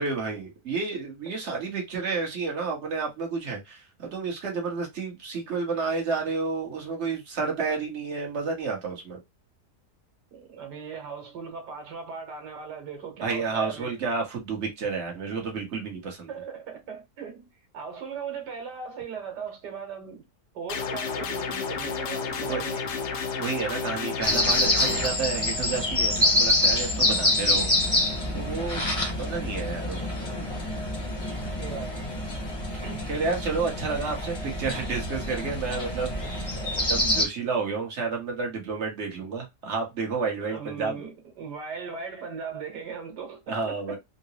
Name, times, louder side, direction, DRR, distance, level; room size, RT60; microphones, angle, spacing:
voice 1, 0.0-9.2 13.2-16.3 22.4-22.6 23.4-27.7 28.3-28.9 29.2-30.1 32.7-32.8 33.1-36.6 36.9-41.0 43.5-44.0, right 4 dB, 45° right, 1.3 m, -30 dB
voice 2, 10.3-13.9 16.3-20.2 20.5-23.1 31.3-32.1 32.8-33.1 36.1-36.8 40.5-44.0, right 6 dB, 85° right, 1.7 m, -38 dB
sound 1, 20.7-25.1, left 5 dB, 85° left, 1.3 m, -31 dB
sound 2, 24.2-37.2, left 1 dB, 25° left, 0.9 m, -26 dB
3.8 x 2.2 x 2.8 m
omnidirectional pair, 1.8 m